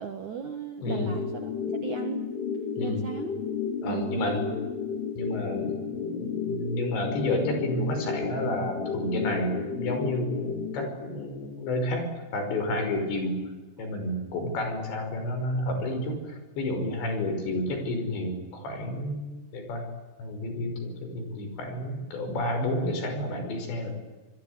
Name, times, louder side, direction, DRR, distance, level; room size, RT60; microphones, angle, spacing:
voice 1, 0.0-2.3 2.8-3.4 3.8-4.5 13.8-13.9, right 6 dB, 60° right, 6 dB, 2.1 m, -36 dB
voice 2, 0.8-1.1 2.8-3.0 3.8-4.5 5.2-12.0 12.3-13.4 13.8-19.9 20.2-24.0, left 1 dB, 65° left, 6 dB, 7.6 m, -30 dB
sound 1, 0.9-10.9, left 6 dB, 85° left, 4.9 m, -33 dB
27.0 x 21.5 x 9.7 m, 1.2 s
omnidirectional pair, 5.6 m